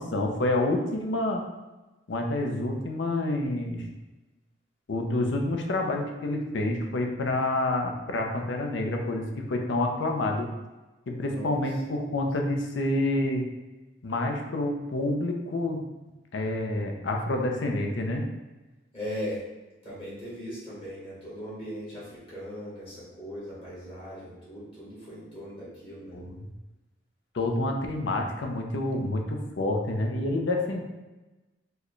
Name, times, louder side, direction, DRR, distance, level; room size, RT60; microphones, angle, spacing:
voice 1, 0.0-1.4 2.1-3.8 4.9-10.5 11.1-13.5 14.0-15.8 16.3-18.3 26.1-26.5 27.3-30.8, left 2 dB, 80° left, 2 dB, 0.5 m, -28 dB
voice 2, 11.2-11.6 18.9-19.4 19.8-26.2, equal, 30° left, -9 dB, 1.4 m, -39 dB
4.5 x 2.2 x 3.1 m, 1.1 s
head